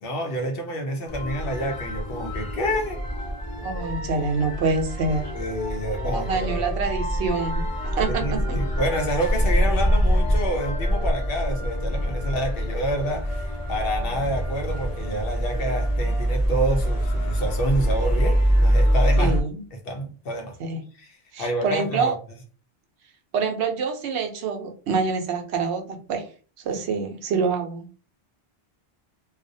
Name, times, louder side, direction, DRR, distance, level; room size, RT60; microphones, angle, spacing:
voice 1, 0.0-3.0 5.3-6.6 8.1-19.3 19.9-20.6 21.0-22.1, right 1 dB, 65° left, 0.7 m, -28 dB
sound 1, 1.1-19.4, equal, 35° left, 0.7 m, -25 dB
voice 2, 3.6-5.3 6.1-8.6 19.2-19.6 20.6-20.8 21.3-22.2 23.3-26.3 26.6-27.9, right 4 dB, 80° right, 0.9 m, -26 dB
2.4 x 2.0 x 2.5 m
omnidirectional pair, 1.1 m